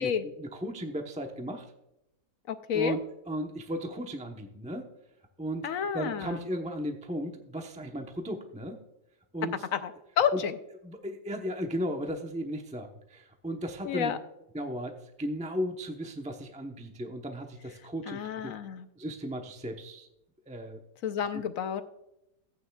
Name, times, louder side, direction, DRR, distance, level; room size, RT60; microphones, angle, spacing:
voice 1, 0.0-1.7 2.7-4.9 5.4-8.8 9.3-9.7 10.3-10.4 10.8-14.1 14.5-18.5 19.0-20.1 20.5-20.8 21.3-21.4, equal, 5° right, 3 dB, 0.5 m, -36 dB
voice 2, 2.5-3.0 5.6-6.4 9.7-10.6 13.8-14.2 18.1-18.9 21.0-21.8, left 8 dB, 65° left, 10 dB, 1.0 m, -30 dB
15.0 x 9.0 x 2.3 m, 0.85 s
omnidirectional pair, 1.7 m